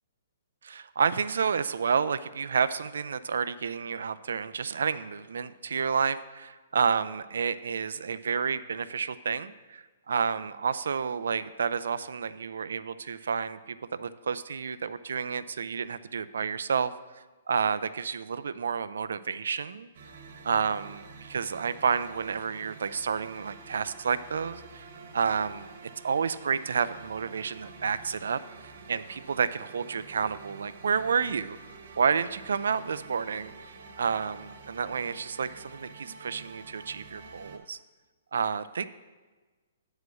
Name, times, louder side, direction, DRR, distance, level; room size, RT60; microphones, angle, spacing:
voice 1, 0.6-19.9 20.4-24.9 25.1-25.7 26.0-28.4 28.9-31.6 32.0-33.5 34.0-37.8 38.3-38.9, right 6 dB, 80° right, 14 dB, 0.3 m, -30 dB
sound 1, 19.9-37.6, right 4 dB, 50° right, 1.1 m, -48 dB
8.2 x 4.8 x 6.2 m, 1.3 s
hypercardioid pair, 170°, 0 cm